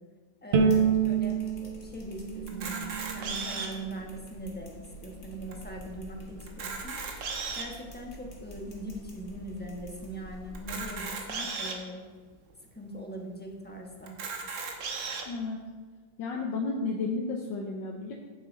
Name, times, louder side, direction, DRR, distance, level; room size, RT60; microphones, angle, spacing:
voice 1, 0.4-4.7 5.0-7.0 7.5-12.0 12.7-14.1, right 1 dB, 5° left, 0 dB, 0.8 m, -41 dB
sound 1, 0.5-10.9, equal, 40° left, 1.7 m, -48 dB
Bowed string instrument, 0.5-3.8, right 6 dB, 70° right, 0.6 m, -28 dB
Camera, 2.5-3.9 4.5-4.6 4.8-5.0 5.5-5.6 6.4-7.8 8.4-8.5 10.5-11.8 12.5-12.6 12.9-13.0 14.1-15.2, right 4 dB, 85° right, 1.8 m, -36 dB
voice 2, 15.3-15.7 16.2-18.1, left 3 dB, 80° left, 0 dB, 1.6 m, -32 dB
9.3 x 7.7 x 4.0 m, 1.5 s
omnidirectional pair, 2.0 m